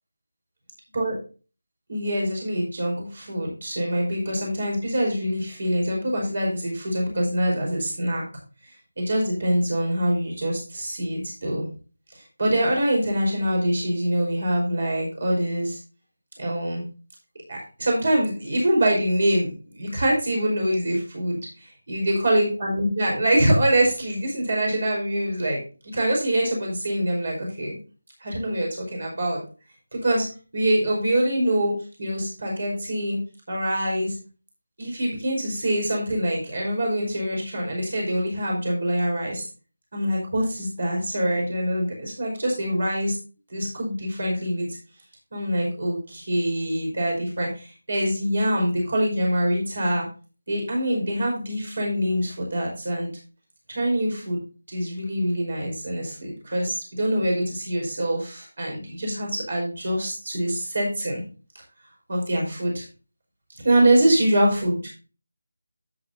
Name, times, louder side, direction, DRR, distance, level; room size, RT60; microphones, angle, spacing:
voice 1, 1.9-8.2 9.0-11.6 12.4-15.8 16.4-16.8 17.5-27.7 28.2-29.4 29.9-30.3 30.5-31.7 32.0-33.2 33.5-34.2 34.8-39.4 39.9-43.1 43.5-44.7 45.3-50.0 50.5-53.1 53.7-54.4 54.7-61.2 62.1-62.8 63.6-64.9, right 1 dB, 50° right, -1 dB, 5.3 m, -24 dB
12.5 x 8.2 x 2.8 m, 0.35 s
figure-of-eight pair, 160°, 0 cm